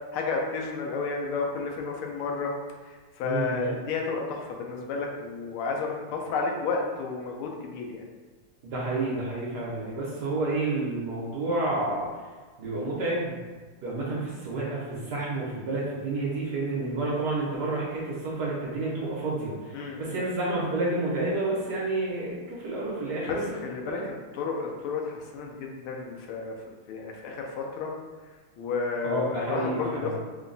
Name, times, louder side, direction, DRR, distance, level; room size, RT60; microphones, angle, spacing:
voice 1, 0.1-2.5 3.2-8.0 19.7-20.2 23.3-27.9 28.6-30.2, left 4 dB, 85° left, 1 dB, 1.5 m, -32 dB
voice 2, 3.2-3.8 8.6-12.1 12.6-13.4 13.8-24.1 29.0-30.2, right 2 dB, 65° right, -5 dB, 1.3 m, -30 dB
3.8 x 2.2 x 3.8 m, 1.4 s
omnidirectional pair, 2.3 m